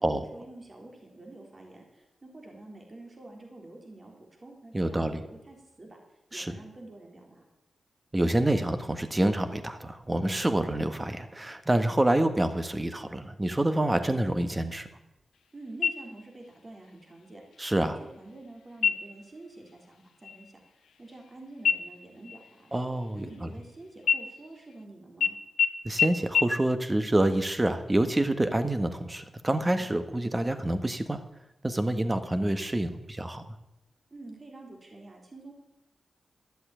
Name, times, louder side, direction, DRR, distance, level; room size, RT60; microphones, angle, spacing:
voice 1, 0.0-7.4 15.5-22.7 23.1-25.4 34.1-35.5, right 2 dB, 40° right, 1 dB, 3.8 m, -48 dB
voice 2, 4.7-5.2 6.3-6.5 8.1-14.9 17.6-17.9 22.7-23.5 25.8-31.2 31.6-33.4, right 1 dB, 20° right, 9 dB, 1.6 m, -27 dB
sound 1, 15.8-16.5 16.9-17.0 17.5-18.0 18.7-19.3 19.7-19.9 20.2-21.3 21.6-23.6 24.0-24.8 25.2-25.3 25.6-25.7 26.0-26.1 26.3-26.4, left 7 dB, 85° left, 1.0 m, -28 dB
12.5 x 7.8 x 9.1 m, 0.96 s
cardioid pair, 50°, 0 cm